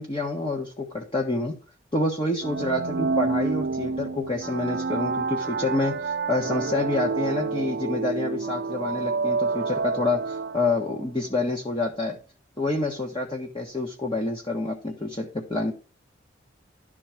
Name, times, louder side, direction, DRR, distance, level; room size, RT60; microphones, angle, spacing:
voice 1, 0.0-1.5 1.9-12.2 12.6-15.7, left 2 dB, 25° left, 0 dB, 1.4 m, -28 dB
sound 1, 2.4-11.0, right 4 dB, 55° right, 0.5 m, -28 dB
11.5 x 4.3 x 6.1 m, 0.34 s
head